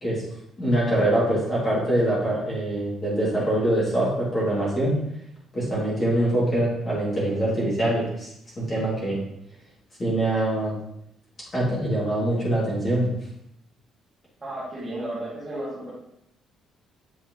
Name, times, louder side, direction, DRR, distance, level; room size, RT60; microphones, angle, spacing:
voice 1, 0.6-5.0 5.5-9.2 10.0-10.8 11.5-13.1, right 1 dB, 25° left, -7 dB, 2.6 m, -24 dB
voice 2, 14.4-15.9, right 1 dB, 15° right, -10 dB, 2.4 m, -33 dB
8.1 x 5.1 x 3.1 m, 0.77 s
cardioid pair, 165°, 0 cm